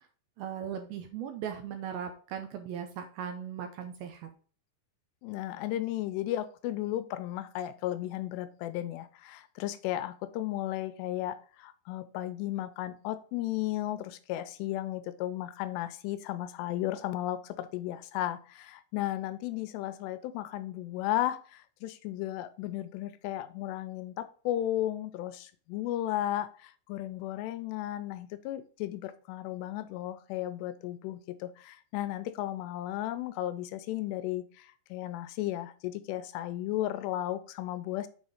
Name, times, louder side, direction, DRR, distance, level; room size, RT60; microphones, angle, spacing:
voice 1, 0.4-4.3, right 8 dB, 80° right, 6 dB, 2.2 m, -38 dB
voice 2, 5.2-38.1, left 13 dB, 85° left, 12 dB, 2.8 m, -34 dB
7.0 x 4.1 x 4.9 m, 0.40 s
omnidirectional pair, 4.8 m